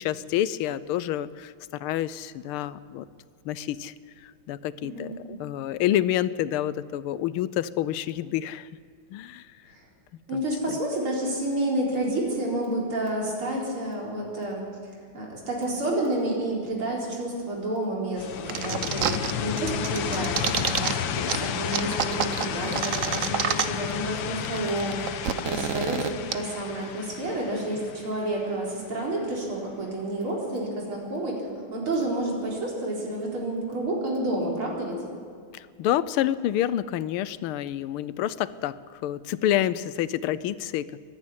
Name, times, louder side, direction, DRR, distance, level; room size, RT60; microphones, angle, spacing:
voice 1, 0.0-3.1 3.4-8.7 9.1-9.5 10.3-10.8 35.5-41.0, left 12 dB, 90° left, 16 dB, 1.6 m, -28 dB
voice 2, 4.8-5.2 9.7-9.8 10.3-14.6 15.1-31.4 31.7-35.0, right 1 dB, 80° right, -3 dB, 5.0 m, -30 dB
sound 1, 18.2-28.9, left 9 dB, 70° left, 1.5 m, -32 dB
sound 2, 18.5-19.3 19.6-20.9 21.3-21.4 21.7-23.9 24.2-24.3 24.5-26.3, right 8 dB, 60° right, 0.8 m, -27 dB
24.5 x 11.0 x 9.7 m, 2.1 s
omnidirectional pair, 2.3 m